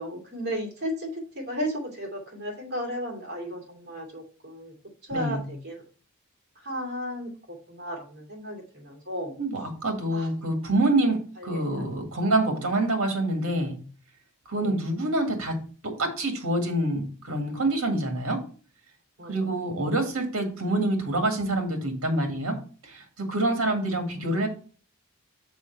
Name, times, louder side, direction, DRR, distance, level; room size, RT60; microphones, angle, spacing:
voice 1, 0.0-4.7 5.0-5.8 6.5-9.4 10.1-10.3 11.4-11.9 12.1-12.3 14.6-14.9 19.2-19.9 23.6-24.5, equal, 50° right, 0 dB, 2.6 m, -35 dB
voice 2, 5.1-5.4 9.4-13.8 14.5-15.6 15.8-18.4 19.3-22.6 22.8-24.5, right 1 dB, 70° right, 4 dB, 1.8 m, -26 dB
6.2 x 5.2 x 4.5 m, 0.40 s
head